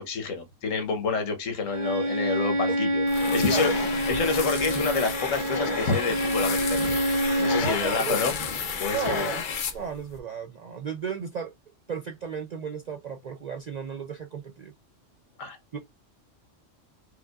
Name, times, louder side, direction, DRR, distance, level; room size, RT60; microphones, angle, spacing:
voice 1, 0.0-3.0 3.3-3.7 4.1-6.9 7.4-8.3 8.8-9.3 15.4-15.6, left 4 dB, 85° left, 1.3 m, -28 dB
Bowed string instrument, 1.7-7.7, right 1 dB, 45° right, 0.8 m, -27 dB
sound 1, 3.1-10.2, left 6 dB, 50° left, 0.6 m, -31 dB
voice 2, 3.5-3.9 7.6-8.3 8.9-9.4 9.7-11.5 11.9-14.7 15.7-15.8, right 7 dB, 80° right, 0.3 m, -34 dB
4.7 x 2.3 x 2.3 m
omnidirectional pair, 1.3 m